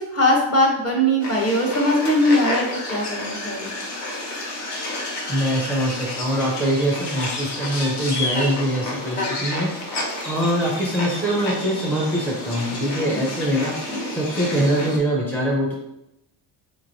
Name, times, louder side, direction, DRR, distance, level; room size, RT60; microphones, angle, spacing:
voice 1, 0.1-3.7, equal, 30° left, -1 dB, 1.0 m, -20 dB
sound 1, 1.2-15.0, left 1 dB, 55° left, 0.9 m, -30 dB
voice 2, 5.3-9.7 10.2-13.7 14.1-15.7, equal, 5° left, -4 dB, 0.5 m, -23 dB
4.4 x 3.0 x 2.6 m, 0.84 s
cardioid pair, 125°, 49 cm